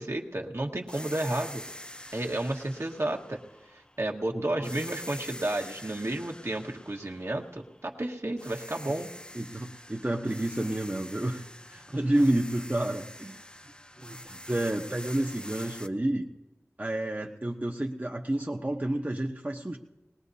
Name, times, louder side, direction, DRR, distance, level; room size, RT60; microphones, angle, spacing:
voice 1, 0.0-1.6 2.1-3.4 3.7-9.1, right 1 dB, 55° right, 1 dB, 1.5 m, -32 dB
sound 1, 0.9-4.2 4.6-8.0 8.4-15.9, left 1 dB, 20° left, 0.7 m, -46 dB
voice 2, 4.3-4.7 9.3-13.4 14.0-16.3 16.8-19.8, right 1 dB, 30° right, 1 dB, 0.9 m, -30 dB
20.5 x 19.5 x 2.8 m, 1.0 s
wide cardioid pair, 50°, 5 cm